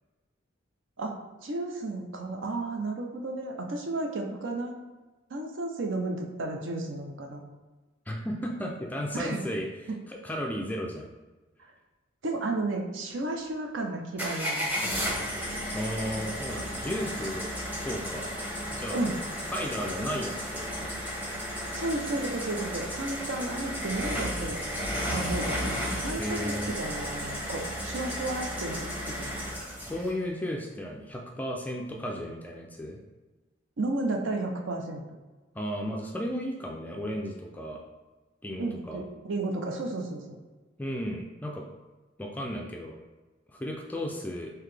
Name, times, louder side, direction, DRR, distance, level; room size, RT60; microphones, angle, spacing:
voice 1, 1.4-4.8 5.3-7.4 9.1-9.4 9.9-10.0 12.2-14.8 18.9-19.2 21.7-24.6 25.1-29.5 33.8-35.0 38.6-40.2, right 2 dB, 65° right, 2 dB, 0.6 m, -33 dB
voice 2, 8.1-9.7 10.1-11.1 15.7-17.5 17.8-18.3 18.7-19.0 19.5-21.0 26.2-26.7 29.8-33.0 35.5-37.8 38.4-39.0 40.8-41.6 42.2-43.0 43.5-44.5, equal, 10° left, 1 dB, 0.3 m, -34 dB
sound 1, 14.2-30.1, equal, 10° right, 0.8 m, -33 dB
3.8 x 2.8 x 3.3 m, 1.2 s
head